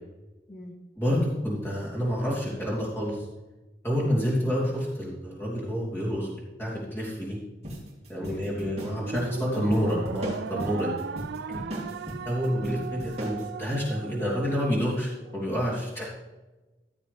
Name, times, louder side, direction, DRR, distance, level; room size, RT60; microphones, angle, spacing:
voice 1, 1.0-3.3 3.8-7.4 8.1-11.0 12.2-16.1, equal, 15° left, -6 dB, 3.1 m, -28 dB
sound 1, 7.6-13.5, right 1 dB, 35° right, 3.1 m, -38 dB
voice 2, 8.3-8.7 11.5-12.0 12.7-12.9 16.0-16.1, left 1 dB, 40° left, 1 dB, 1.7 m, -42 dB
sound 2, 8.9-15.4, right 6 dB, 75° right, 0.3 m, -37 dB
14.5 x 7.3 x 3.4 m, 1.1 s
head